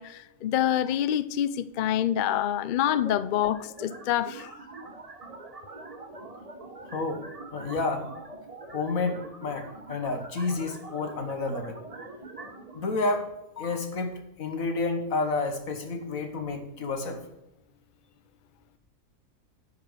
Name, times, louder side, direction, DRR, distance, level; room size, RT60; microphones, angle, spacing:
voice 1, 0.0-4.5, left 11 dB, 70° left, 0.4 m, -26 dB
sound 1, 2.9-12.9, right 2 dB, 30° right, 1.1 m, -44 dB
voice 2, 6.9-7.2 7.5-8.1 8.7-11.7 12.8-13.3 13.6-17.2, left 3 dB, 85° left, 1.9 m, -30 dB
10.5 x 5.5 x 6.4 m
omnidirectional pair, 1.4 m